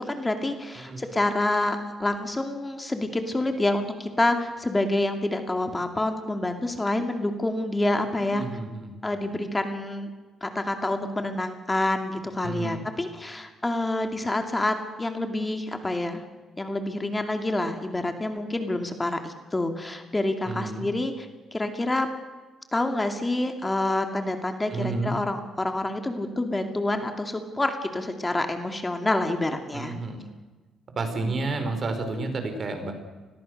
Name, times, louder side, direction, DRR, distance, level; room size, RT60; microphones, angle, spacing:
voice 1, 0.1-8.4 9.0-10.1 10.4-16.2 16.6-21.3 21.5-22.1 22.7-29.9, left 2 dB, 15° left, 6 dB, 2.5 m, -27 dB
voice 2, 8.3-8.9 12.4-12.9 20.5-20.9 24.7-25.1 29.7-30.4 31.0-32.9, right 3 dB, 45° right, 7 dB, 5.2 m, -31 dB
29.5 x 21.5 x 6.7 m, 1.3 s
cardioid pair, 90°, 0 cm